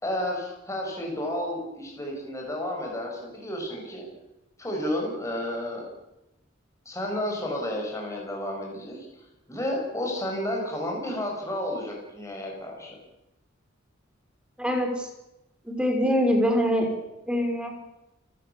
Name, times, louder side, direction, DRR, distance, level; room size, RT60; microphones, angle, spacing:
voice 1, 0.0-4.1 4.6-5.9 6.8-9.1 9.5-13.0, left 1 dB, 15° left, -1 dB, 6.7 m, -31 dB
voice 2, 14.6-15.1 15.7-16.9 17.3-17.8, equal, 5° right, 4 dB, 5.1 m, -24 dB
29.0 x 15.5 x 8.4 m, 0.94 s
head